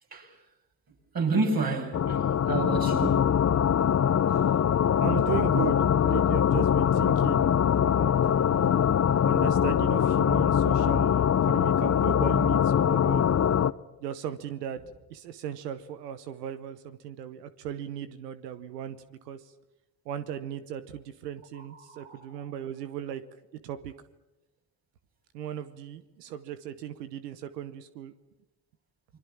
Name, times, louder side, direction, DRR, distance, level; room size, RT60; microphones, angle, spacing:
voice 1, 1.1-3.3 21.8-22.4, right 3 dB, 50° right, 7.9 m, -30 dB
sound 1, 1.9-13.7, left 9 dB, 35° left, 0.8 m, -23 dB
voice 2, 5.0-8.8 9.1-13.2 14.0-14.8 15.1-19.4 20.1-23.2 23.6-23.9 25.3-28.1, right 10 dB, 90° right, 1.0 m, -37 dB
30.0 x 22.0 x 7.3 m
hypercardioid pair, 50°, 47 cm